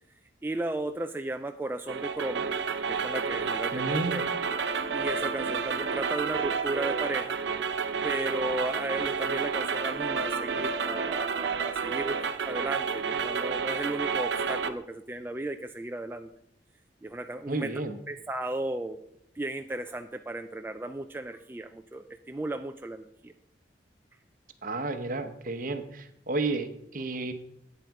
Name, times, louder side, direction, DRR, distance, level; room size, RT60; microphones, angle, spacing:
voice 1, 0.4-2.5 2.9-4.3 4.9-7.4 8.0-16.3 17.0-17.7 18.1-19.0 19.4-23.3, right 2 dB, 10° right, 6 dB, 0.3 m, -35 dB
sound 1, 1.9-14.7, right 5 dB, 90° right, 0.6 m, -30 dB
voice 2, 3.7-4.2 17.5-18.0 24.6-27.3, right 2 dB, 50° right, 9 dB, 0.9 m, -32 dB
9.2 x 7.9 x 4.7 m, 0.77 s
head